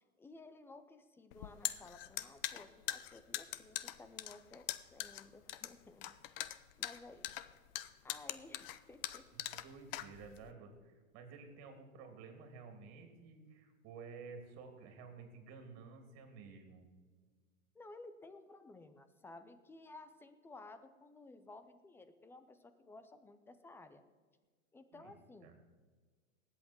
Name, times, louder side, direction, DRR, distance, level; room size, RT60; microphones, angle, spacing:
voice 1, 0.2-7.3 8.0-9.6 17.7-24.0 24.7-25.5, left 2 dB, 5° left, 11 dB, 0.5 m, -56 dB
sound 1, 1.3-10.5, left 14 dB, 45° left, 0.7 m, -42 dB
voice 2, 9.3-16.9 24.9-25.5, right 5 dB, 40° right, 5 dB, 3.1 m, -53 dB
19.5 x 8.1 x 4.6 m, 1.5 s
hypercardioid pair, 125°, 40 cm